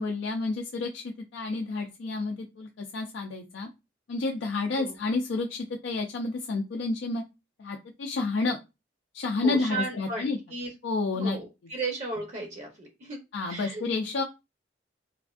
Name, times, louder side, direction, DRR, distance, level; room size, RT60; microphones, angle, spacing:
voice 1, 0.0-3.7 4.1-7.2 7.6-8.6 9.1-10.4 10.8-11.4 13.3-14.2, left 3 dB, 80° left, 2 dB, 0.4 m, -30 dB
voice 2, 9.4-10.7 11.1-13.2 13.5-13.8, right 3 dB, 40° right, 2 dB, 0.6 m, -35 dB
3.2 x 2.5 x 2.3 m, 0.25 s
head